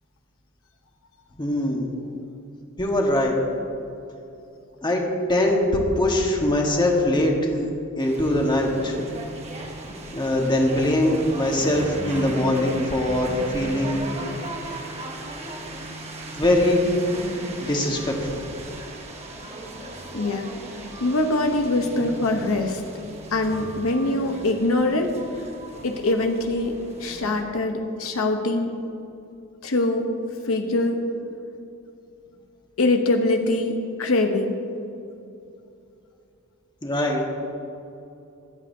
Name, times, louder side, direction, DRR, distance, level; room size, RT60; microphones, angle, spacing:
voice 1, 1.4-1.8 2.8-3.4 4.8-5.0 5.3-7.7 8.0-8.9 10.1-14.0 16.4-17.1 17.6-18.3 36.8-37.4, left 1 dB, 20° left, 0 dB, 1.5 m, -22 dB
sound 1, 8.0-27.4, right 1 dB, 30° right, 1.3 m, -37 dB
voice 2, 20.1-20.5 21.0-22.8 23.3-25.1 25.8-28.7 29.6-30.0 30.4-31.0 32.8-33.7 34.0-34.6, left 2 dB, 75° left, 4 dB, 0.9 m, -23 dB
24.0 x 8.4 x 2.7 m, 2.7 s
head